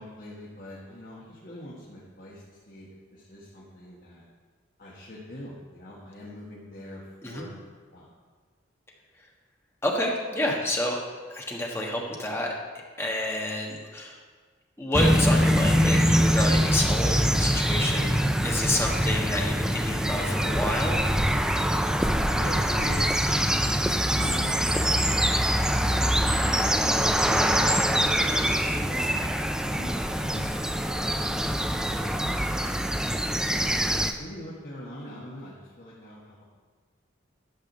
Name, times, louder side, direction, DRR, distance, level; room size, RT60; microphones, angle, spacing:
voice 1, 0.0-4.2 4.8-7.6 7.9-8.1 22.3-29.2 29.7-32.7 33.4-36.4, left 1 dB, 45° left, -6 dB, 1.6 m, -43 dB
voice 2, 9.8-11.0 11.3-12.5 13.0-14.2 14.8-21.1, left 1 dB, 15° left, -1 dB, 1.4 m, -29 dB
sound 1, 14.9-34.1, equal, 5° right, 0.4 m, -24 dB
12.0 x 5.0 x 6.7 m, 1.5 s
head